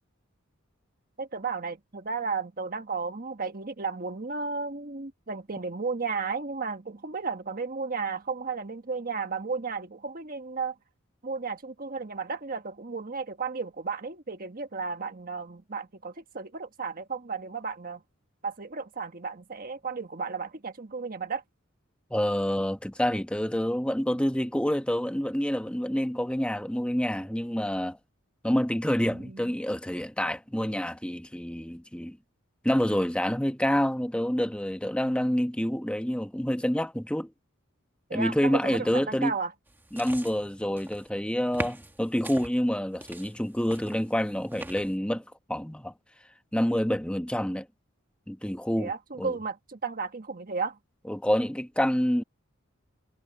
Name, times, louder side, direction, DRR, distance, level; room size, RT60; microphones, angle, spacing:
voice 1, 1.2-10.7 11.2-18.0 18.4-21.4 29.0-29.6 38.1-39.5 48.8-50.8, right 4 dB, 45° right, 1.5 m, -34 dB
voice 2, 22.1-28.0 28.4-32.2 32.6-37.3 38.1-39.3 39.9-45.2 45.5-45.9 46.5-47.7 48.3-48.9 49.2-49.3 51.1-52.2, equal, 5° left, 1.1 m, -27 dB
sound 1, 39.7-41.1 41.5-42.5 43.0-45.0, right 1 dB, 10° right, 1.5 m, -41 dB
head